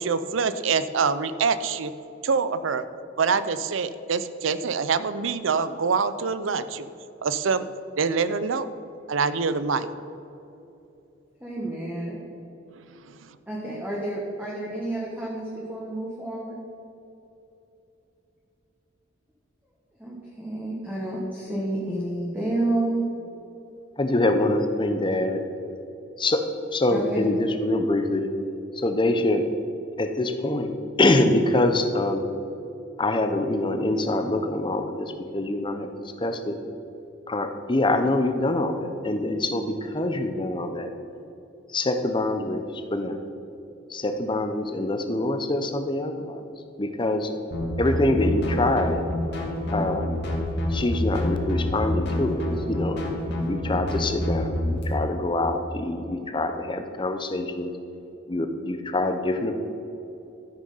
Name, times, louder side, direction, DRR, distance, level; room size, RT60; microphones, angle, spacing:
voice 1, 0.0-1.9 2.2-2.9 3.2-6.9 7.2-7.7 8.0-8.7 9.1-9.9 13.1-13.2, right 5 dB, 75° right, 13 dB, 0.5 m, -25 dB
voice 2, 11.4-12.2 13.5-16.5 20.0-23.0 26.9-27.3, right 1 dB, 10° right, -5 dB, 1.4 m, -30 dB
voice 3, 24.0-25.4 26.2-26.4 26.7-28.3 28.7-29.4 30.0-32.2 33.0-35.9 36.2-36.6 37.3-41.0 41.7-43.2 43.9-46.4 46.8-47.3 47.8-49.0 49.7-50.1 50.7-53.0 53.4-57.7 58.3-59.6, left 2 dB, 25° left, 7 dB, 0.7 m, -25 dB
sound 1, 47.5-54.8, left 1 dB, 60° left, 2.1 m, -27 dB
13.0 x 6.3 x 5.5 m, 2.9 s
head